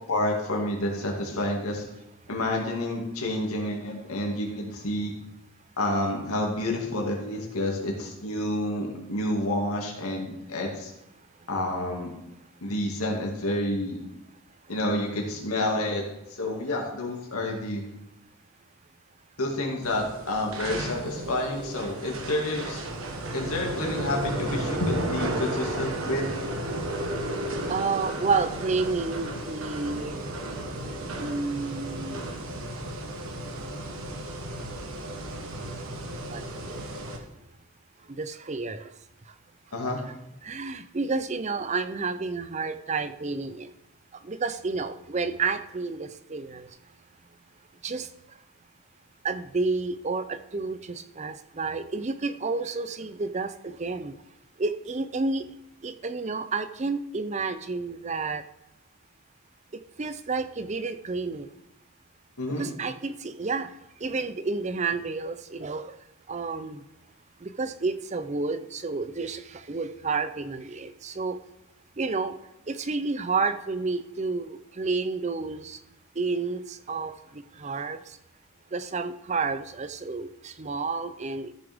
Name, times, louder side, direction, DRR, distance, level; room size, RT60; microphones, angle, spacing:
voice 1, 0.1-1.8 2.3-5.1 5.8-10.9 11.5-12.1 12.6-14.0 14.7-16.0 16.3-17.8 19.4-22.8 23.3-26.3 39.7-40.0 62.4-62.7, left 1 dB, 80° left, 0 dB, 2.2 m, -29 dB
sound 1, 19.8-37.2, right 1 dB, 70° right, 1.4 m, -34 dB
voice 2, 27.7-30.2 31.2-32.3 36.3-36.4 36.7-36.8 38.2-38.9 40.4-43.7 44.2-46.7 47.8-48.1 49.2-54.1 54.6-55.5 55.8-58.4 60.0-61.5 62.6-63.7 64.0-65.9 66.3-66.8 67.4-71.4 72.0-72.3 72.7-75.8 76.2-77.1 77.6-78.0 78.7-81.5, right 4 dB, 30° right, 11 dB, 0.5 m, -30 dB
14.0 x 6.9 x 3.6 m, 0.87 s
head